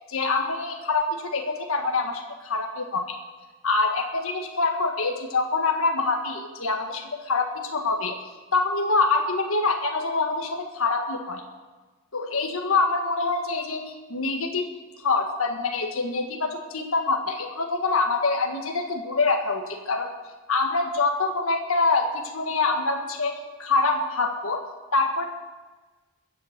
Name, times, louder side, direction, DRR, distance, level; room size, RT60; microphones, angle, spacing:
voice 1, 0.1-3.1 3.6-8.1 8.5-11.4 12.1-13.8 14.1-14.7 15.0-20.1 20.5-24.6 24.9-25.2, left 3 dB, 70° left, 3 dB, 1.7 m, -25 dB
21.5 x 8.0 x 7.4 m, 1.3 s
head